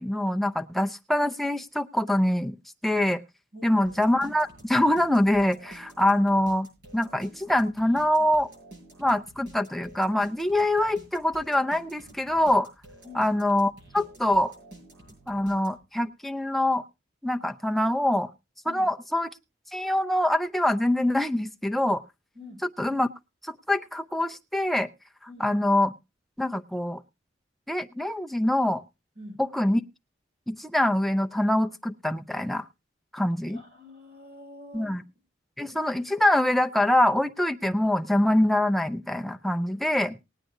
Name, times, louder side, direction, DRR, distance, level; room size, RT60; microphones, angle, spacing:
voice 1, 0.0-2.6 2.8-3.2 3.6-6.7 6.9-8.5 9.0-12.7 13.1-14.5 15.3-16.8 17.2-18.3 18.7-19.3 19.7-22.0 22.8-23.1 23.4-24.9 25.4-25.9 26.4-27.0 27.7-28.8 29.4-29.8 30.5-32.6 33.1-33.6 34.7-35.0 35.6-40.2, left 1 dB, ahead, 6 dB, 0.5 m, -24 dB
voice 2, 3.5-3.8 13.0-13.3 18.7-18.9 22.3-22.6 25.3-25.5 29.2-29.4 33.5-35.0, left 1 dB, 60° right, 2 dB, 5.7 m, -45 dB
sound 1, 3.8-16.1, right 1 dB, 75° right, 7.1 m, -50 dB
20.0 x 9.0 x 2.6 m, 0.26 s
head